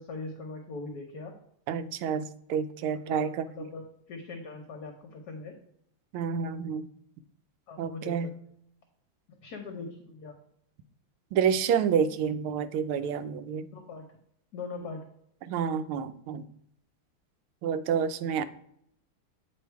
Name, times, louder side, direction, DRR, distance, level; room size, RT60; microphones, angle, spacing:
voice 1, 0.0-1.3 3.0-5.5 7.7-8.3 9.4-10.3 13.7-14.0 14.5-15.0, left 3 dB, 60° left, 3 dB, 1.2 m, -41 dB
voice 2, 1.7-3.3 6.1-6.9 7.8-8.3 11.3-13.7 15.5-16.4 17.6-18.4, right 7 dB, 85° right, 11 dB, 1.5 m, -28 dB
8.2 x 3.3 x 4.6 m, 0.72 s
omnidirectional pair, 2.3 m